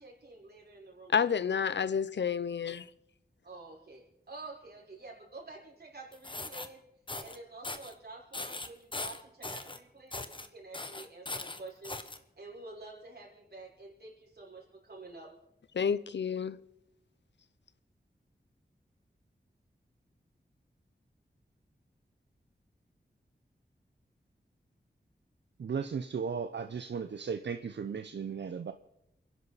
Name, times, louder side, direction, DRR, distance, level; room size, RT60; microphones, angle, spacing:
voice 1, 0.0-1.2 3.4-6.8 7.2-12.0 12.4-15.3, right 2 dB, 65° right, 5.6 m, -49 dB
voice 2, 1.1-2.9 15.7-16.6, left 7 dB, 85° left, 0.6 m, -30 dB
sound 1, 6.1-6.7 7.1-7.4 7.6-7.9 8.3-9.8 10.1-10.5 10.7-12.2, left 2 dB, 30° left, 1.2 m, -40 dB
voice 3, 25.6-28.7, right 6 dB, 85° right, 0.7 m, -36 dB
29.0 x 11.0 x 4.1 m
wide cardioid pair, 80°, 18 cm